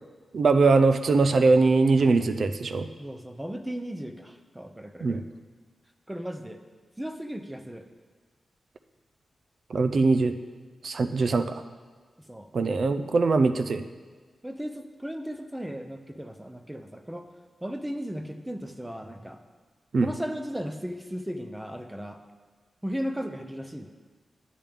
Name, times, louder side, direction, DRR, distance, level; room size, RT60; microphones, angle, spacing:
voice 1, 0.3-2.9 5.0-5.2 9.7-10.3 10.8-11.6 12.5-13.9 19.9-20.1, right 3 dB, 65° right, 9 dB, 0.5 m, -22 dB
voice 2, 3.0-5.2 6.1-6.6 7.0-7.9 11.0-11.2 12.3-12.5 14.4-17.3 17.6-19.4 20.0-22.2 22.8-23.9, equal, 10° right, 7 dB, 0.7 m, -36 dB
10.5 x 9.0 x 3.5 m, 1.4 s
cardioid pair, 85°, 0 cm